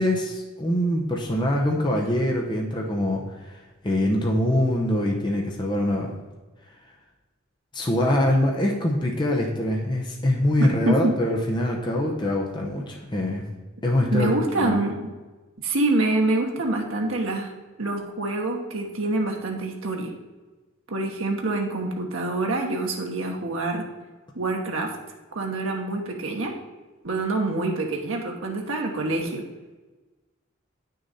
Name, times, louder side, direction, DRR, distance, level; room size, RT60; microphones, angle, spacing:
voice 1, 0.0-3.6 3.8-6.1 7.7-13.5 13.8-14.8, left 1 dB, 20° left, -1 dB, 0.9 m, -24 dB
voice 2, 10.6-11.2 14.1-15.1 15.6-17.5 17.8-20.1 20.9-23.9 24.3-24.9 25.3-26.5 27.0-29.5, right 2 dB, 80° right, 0 dB, 1.1 m, -26 dB
8.9 x 6.5 x 4.2 m, 1.2 s
head